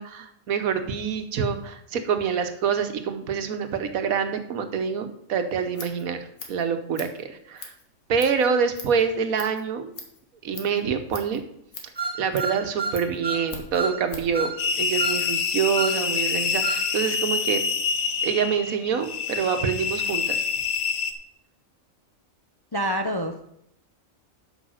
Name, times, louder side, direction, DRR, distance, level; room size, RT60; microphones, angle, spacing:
voice 1, 0.0-7.7 8.1-9.9 10.4-11.4 12.2-17.6 18.2-20.4, right 6 dB, 90° right, 8 dB, 1.4 m, -26 dB
Scissors, 5.5-14.4, left 4 dB, 60° left, 1.7 m, -43 dB
sound 1, 12.0-13.5 13.7-14.0 14.3-14.6 15.0-15.2 15.7-16.0 16.6-16.8, right 4 dB, 20° right, 1.6 m, -29 dB
sound 2, 14.6-21.1, left 6 dB, 90° left, 1.2 m, -26 dB
voice 2, 22.7-23.4, equal, 35° left, 5 dB, 0.3 m, -26 dB
8.2 x 5.8 x 6.3 m, 0.77 s
omnidirectional pair, 1.4 m